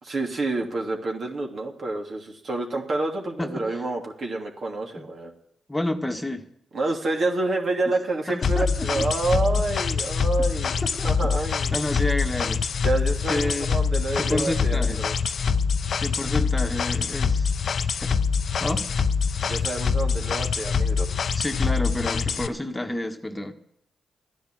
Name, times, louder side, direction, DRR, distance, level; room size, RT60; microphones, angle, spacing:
voice 1, 0.0-5.3 6.7-11.8 12.8-15.1 19.4-21.1, right 2 dB, 55° right, 1 dB, 2.8 m, -28 dB
voice 2, 3.4-3.8 5.7-6.5 7.9-8.0 8.3-9.1 9.8-9.9 10.8-11.3 11.7-12.6 13.3-13.8 14.2-15.0 16.0-17.5 18.0-18.1 18.6-18.9 21.3-23.5, left 1 dB, 15° left, 4 dB, 1.5 m, -29 dB
sound 1, 8.4-22.5, left 5 dB, 60° left, 0.7 m, -24 dB
13.5 x 10.0 x 7.6 m, 0.75 s
supercardioid pair, 55°, 0 cm